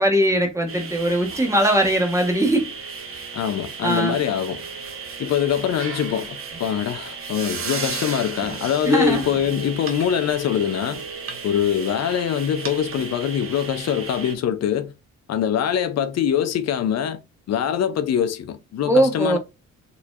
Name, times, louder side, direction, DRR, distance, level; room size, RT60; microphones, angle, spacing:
voice 1, 0.0-2.7 3.8-4.2 8.8-9.2 18.8-19.4, right 1 dB, 10° right, 1.2 m, -20 dB
sound 1, 0.7-14.3, right 5 dB, 45° right, 1.0 m, -34 dB
voice 2, 3.3-4.6 5.2-11.0 11.4-14.9 15.3-17.2 17.5-19.4, left 9 dB, 60° left, 0.6 m, -23 dB
4.1 x 2.7 x 2.4 m
cardioid pair, 90°, 30 cm